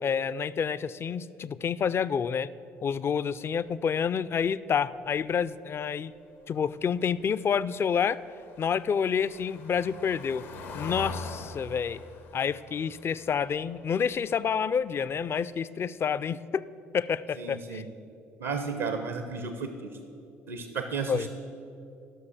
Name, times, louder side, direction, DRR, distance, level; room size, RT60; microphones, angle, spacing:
voice 1, 0.0-2.5 2.8-6.1 6.5-8.2 8.6-10.4 10.7-12.0 12.3-16.6 16.9-17.8 21.1-21.3, left 7 dB, 40° left, 16 dB, 0.4 m, -28 dB
Car passing by / Engine, 7.5-14.5 14.8-15.1 15.3-15.4, left 3 dB, 80° left, 1.0 m, -43 dB
voice 2, 17.4-17.8 18.4-19.9 20.5-21.3, right 5 dB, 75° right, 7 dB, 0.7 m, -33 dB
12.0 x 6.2 x 7.2 m, 2.8 s
hypercardioid pair, 55°, 7 cm